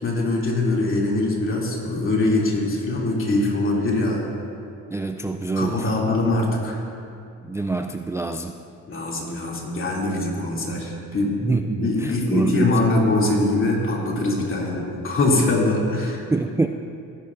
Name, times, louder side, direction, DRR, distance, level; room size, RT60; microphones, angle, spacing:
voice 1, 0.0-4.3 5.5-6.8 8.9-11.3 11.8-16.2, left 2 dB, 45° left, -3 dB, 2.8 m, -22 dB
voice 2, 4.9-6.0 7.4-8.6 11.4-12.9 16.3-16.7, right 3 dB, 10° right, 5 dB, 0.3 m, -25 dB
18.0 x 10.5 x 2.6 m, 2.5 s
cardioid pair, 90°, 30 cm